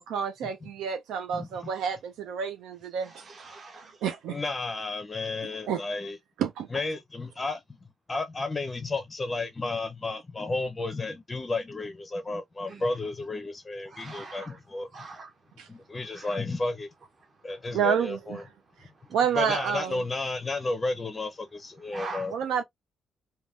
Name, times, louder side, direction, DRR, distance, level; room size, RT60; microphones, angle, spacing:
voice 1, 0.0-3.2 4.0-4.3 5.7-5.8 6.4-6.7 15.6-15.7 17.7-18.4 19.1-20.0 22.3-22.6, right 7 dB, 85° right, 0.3 m, -29 dB
voice 2, 1.3-1.7 4.3-6.2 6.7-7.6 8.1-14.9 15.7-16.9 17.4-18.4 19.4-22.3, left 3 dB, 25° left, 0.5 m, -32 dB
voice 3, 3.0-4.0 12.7-12.8 13.9-14.6 14.9-15.3 16.1-16.4 21.9-22.3, right 3 dB, 40° right, 0.7 m, -42 dB
3.3 x 2.1 x 2.3 m
cardioid pair, 90°, 0 cm